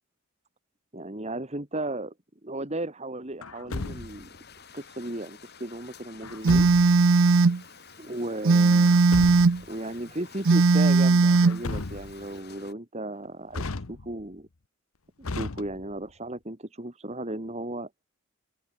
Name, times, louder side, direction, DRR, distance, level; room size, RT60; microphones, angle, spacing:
voice 1, 0.9-2.1 2.4-4.3 4.7-6.7 8.0-9.0 9.7-14.5 15.2-17.9, right 1 dB, 30° right, 2.3 m, -35 dB
Truck, 3.4-4.4 6.2-7.1 8.7-9.7 11.3-12.3 13.5-14.3 15.2-16.1, left 3 dB, 80° left, 1.1 m, -35 dB
sound 1, 3.7-12.7, left 6 dB, 50° left, 5.1 m, -50 dB
Telephone, 6.4-7.6 8.4-9.6 10.4-11.6, right 4 dB, 65° right, 0.6 m, -18 dB
head